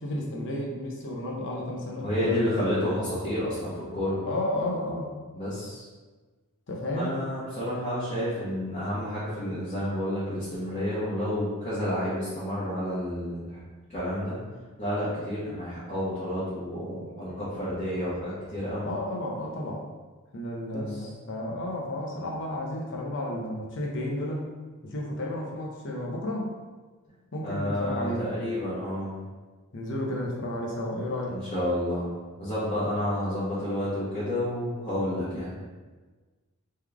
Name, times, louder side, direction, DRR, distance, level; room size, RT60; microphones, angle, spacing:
voice 1, 0.0-2.5 4.2-5.1 6.7-7.1 18.8-19.8 20.3-24.5 24.8-26.5 27.3-28.3 29.7-31.4, left 1 dB, 60° left, -1 dB, 0.8 m, -32 dB
voice 2, 2.0-4.2 5.3-5.9 6.9-13.6 13.9-14.4 14.8-18.9 20.7-21.1 27.4-29.2 31.2-32.1 32.4-35.5, left 1 dB, 30° left, -12 dB, 1.3 m, -30 dB
3.8 x 3.2 x 3.4 m, 1.3 s
head